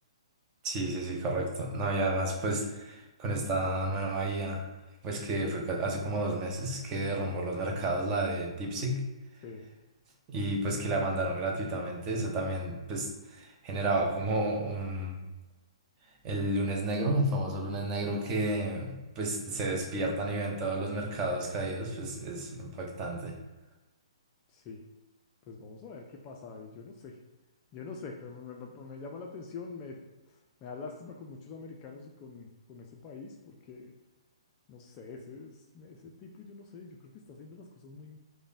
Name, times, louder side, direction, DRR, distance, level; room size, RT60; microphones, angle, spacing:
voice 1, 0.6-4.7 5.0-9.0 10.3-15.2 16.2-23.4, right 2 dB, 20° right, 0 dB, 0.6 m, -31 dB
voice 2, 24.5-24.8 25.5-27.2 27.7-30.0 30.6-33.9 34.7-38.2, left 4 dB, 25° left, 1 dB, 0.3 m, -45 dB
4.8 x 2.1 x 2.5 m, 1.1 s
figure-of-eight pair, 125°, 3 cm